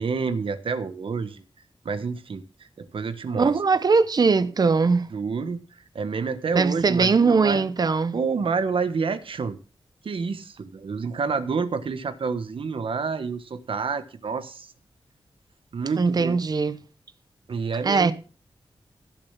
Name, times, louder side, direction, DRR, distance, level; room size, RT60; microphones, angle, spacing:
voice 1, 0.0-1.4 1.8-3.5 5.1-5.6 5.9-7.6 8.1-9.6 10.0-14.7 15.7-16.4 17.5-18.1, right 5 dB, 70° right, 1.3 m, -28 dB
voice 2, 3.4-5.1 6.5-8.2 16.0-16.8 17.8-18.1, right 4 dB, 45° right, 0.8 m, -20 dB
15.0 x 7.0 x 5.8 m
wide cardioid pair, 150°, 9 cm